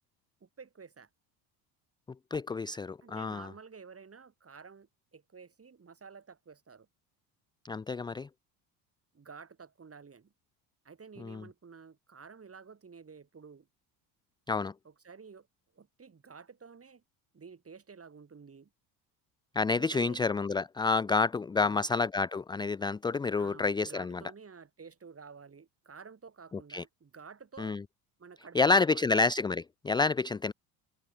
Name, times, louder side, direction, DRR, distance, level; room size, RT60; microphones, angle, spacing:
voice 1, 0.4-1.1 3.0-6.9 9.1-10.3 10.8-13.7 14.8-15.5 15.7-17.0 17.3-18.7 19.7-20.2 21.6-21.8 23.4-27.8 28.2-29.0, right 5 dB, 30° right, 7.4 m, -51 dB
voice 2, 2.3-3.5 7.6-8.3 11.2-11.4 14.5-14.7 19.6-24.2 26.7-26.8 27.6-27.8 28.5-30.5, left 4 dB, 10° left, 0.4 m, -29 dB
supercardioid pair, 75°, 48 cm